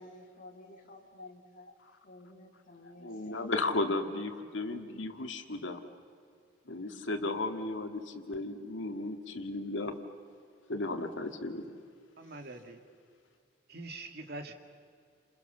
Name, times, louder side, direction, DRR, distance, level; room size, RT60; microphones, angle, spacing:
voice 1, 0.0-1.7 2.0-3.1, left 1 dB, 45° left, 1 dB, 3.0 m, -53 dB
voice 2, 2.9-5.8 6.7-10.0 10.7-11.6, left 2 dB, 85° left, 6 dB, 2.2 m, -35 dB
voice 3, 12.2-12.8 13.7-14.5, right 2 dB, 60° right, 5 dB, 2.3 m, -43 dB
30.0 x 27.5 x 7.0 m, 2.3 s
head